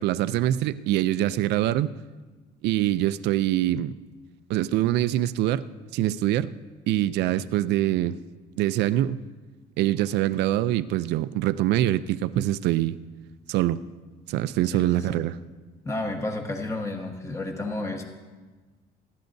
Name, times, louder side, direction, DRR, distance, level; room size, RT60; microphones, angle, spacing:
voice 1, 0.0-1.9 2.6-3.9 4.5-5.6 5.9-6.5 6.9-8.2 8.6-9.2 9.8-13.0 13.5-13.8 14.3-15.4, right 13 dB, 85° right, 0.5 m, -24 dB
voice 2, 14.7-15.2 15.8-18.0, left 2 dB, 15° left, 1.3 m, -31 dB
27.0 x 11.5 x 2.7 m
cardioid pair, 110°, 17 cm